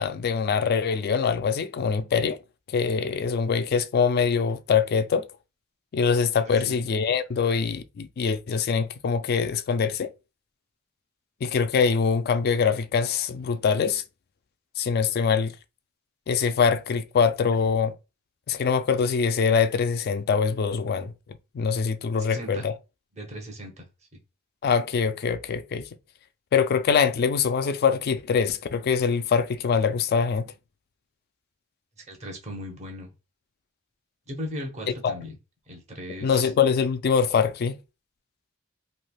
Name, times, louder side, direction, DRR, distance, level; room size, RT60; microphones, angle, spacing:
voice 1, 0.0-2.4 2.7-5.3 5.9-10.1 11.4-14.0 14.8-15.5 16.3-17.9 18.5-21.1 21.5-22.7 24.6-25.8 26.5-30.5 35.0-35.1 36.2-37.8, left 6 dB, 45° left, 0.3 m, -23 dB
voice 2, 6.4-6.8 22.1-22.7 23.1-23.9 32.0-33.1 34.3-35.3 35.7-36.5, equal, 30° right, 0.8 m, -38 dB
3.2 x 2.8 x 2.2 m
head